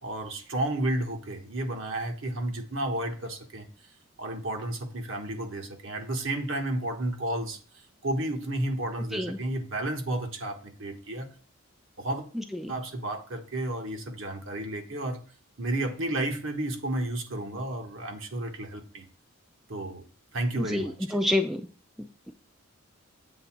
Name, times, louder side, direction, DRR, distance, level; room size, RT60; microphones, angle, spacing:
voice 1, 0.0-3.7 4.2-7.6 8.0-11.3 12.0-12.3 12.7-15.2 15.6-19.0 19.7-20.0 20.3-21.2, right 1 dB, 65° right, 4 dB, 1.3 m, -32 dB
voice 2, 12.3-12.7 20.6-21.7 22.0-22.3, left 1 dB, ahead, 5 dB, 0.4 m, -29 dB
8.0 x 3.6 x 5.9 m, 0.39 s
head